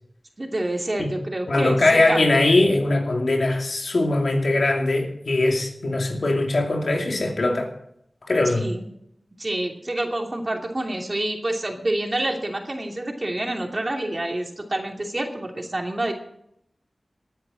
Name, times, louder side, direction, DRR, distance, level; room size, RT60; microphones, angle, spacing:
voice 1, 0.4-2.5 8.4-8.8 9.4-16.1, right 1 dB, 40° right, 2 dB, 2.8 m, -28 dB
voice 2, 1.5-7.7 8.3-8.6, left 2 dB, 80° left, 1 dB, 2.6 m, -21 dB
19.0 x 9.4 x 4.2 m, 0.75 s
wide cardioid pair, 50°, 0 cm